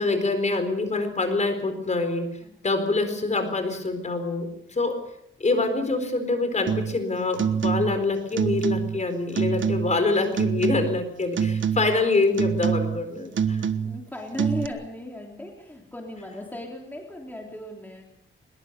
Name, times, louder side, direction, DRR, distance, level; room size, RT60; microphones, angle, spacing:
voice 1, 0.0-2.3 2.6-5.0 5.4-13.7, left 3 dB, 35° left, 8 dB, 4.4 m, -25 dB
sound 1, 6.7-7.0 7.3-8.0 8.3-9.0 9.4-10.0 10.4-11.1 11.4-12.0 12.4-13.0 13.3-14.0 14.4-14.7, right 7 dB, 65° right, 1.3 m, -25 dB
voice 2, 12.8-18.0, left 1 dB, 10° left, 0 dB, 3.3 m, -37 dB
23.0 x 22.0 x 6.9 m, 0.76 s
wide cardioid pair, 145°, 21 cm